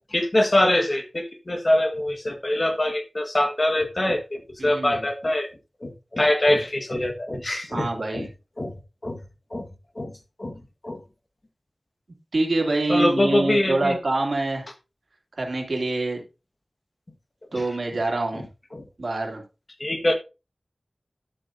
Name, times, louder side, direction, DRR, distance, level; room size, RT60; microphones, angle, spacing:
voice 1, 0.1-5.5 5.8-7.9 8.1-8.3 8.6-8.7 9.0-9.2 9.5-9.7 9.9-10.1 10.4-10.5 10.8-11.0 12.9-14.0 17.5-17.6 18.3-18.4 18.7-18.8 19.8-20.2, left 1 dB, 40° left, 1.5 m, -23 dB
voice 2, 4.6-5.1 7.7-8.3 12.3-14.7 15.4-16.2 17.5-18.4 19.0-19.4, right 2 dB, 75° right, 2.4 m, -25 dB
11.5 x 7.9 x 2.7 m
wide cardioid pair, 65°, 0 cm